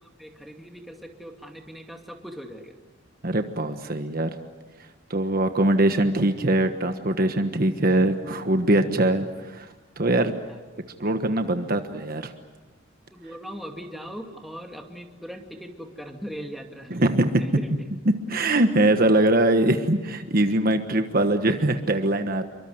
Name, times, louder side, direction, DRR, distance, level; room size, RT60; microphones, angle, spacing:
voice 1, 0.0-2.7 13.1-17.0 17.4-17.7, equal, ahead, 3 dB, 2.4 m, -39 dB
voice 2, 3.2-4.3 5.1-9.7 10.0-10.4 11.0-12.3 16.9-17.4 18.3-22.4, right 1 dB, 50° right, 7 dB, 1.4 m, -22 dB
28.5 x 24.0 x 7.9 m, 1.2 s
head